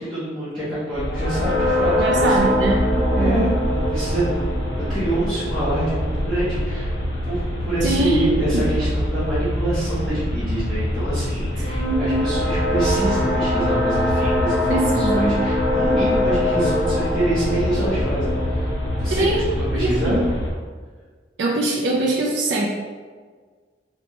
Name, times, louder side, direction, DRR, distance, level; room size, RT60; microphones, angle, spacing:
voice 1, 0.0-2.4 3.2-6.9 7.2-18.3 19.0-20.2, right 1 dB, 5° left, -15 dB, 0.9 m, -26 dB
sound 1, 0.9-20.5, equal, 85° left, 0.9 m, -23 dB
voice 2, 2.0-3.4 7.8-8.6 11.8-12.3 14.7-15.4 19.1-20.2 21.4-22.7, right 2 dB, 70° right, -3 dB, 0.4 m, -23 dB
4.0 x 2.2 x 2.9 m, 1.5 s
head